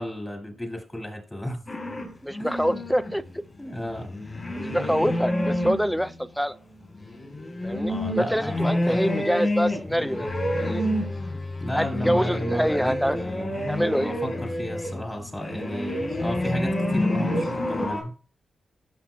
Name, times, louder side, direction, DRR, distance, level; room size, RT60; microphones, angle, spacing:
voice 1, 0.0-1.6 2.4-2.8 3.6-4.1 7.9-9.2 10.0-10.3 11.6-13.6 13.9-18.1, equal, 15° left, 2.3 m, -33 dB
sound 1, 1.7-6.1 6.8-18.0, left 1 dB, 35° left, 4.0 m, -29 dB
voice 2, 2.2-3.4 4.6-6.6 7.6-10.3 10.6-10.8 11.8-13.2 13.7-14.1, equal, ahead, 0.4 m, -26 dB
Bass guitar, 10.3-16.5, left 3 dB, 90° left, 1.3 m, -38 dB
11.5 x 6.0 x 2.3 m
cardioid pair, 75°, 0 cm